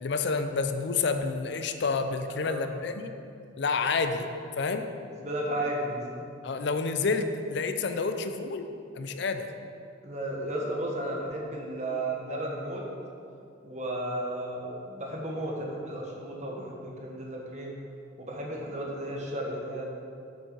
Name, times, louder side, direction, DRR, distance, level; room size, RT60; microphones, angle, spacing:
voice 1, 0.0-3.1 3.6-4.3 4.6-4.9 6.4-8.7 8.9-9.5, left 4 dB, 60° left, 8 dB, 0.5 m, -29 dB
voice 2, 5.2-6.2 10.0-12.8 13.6-17.8 18.2-19.8, right 1 dB, 40° right, -1 dB, 1.3 m, -34 dB
8.4 x 6.8 x 4.6 m, 2.5 s
head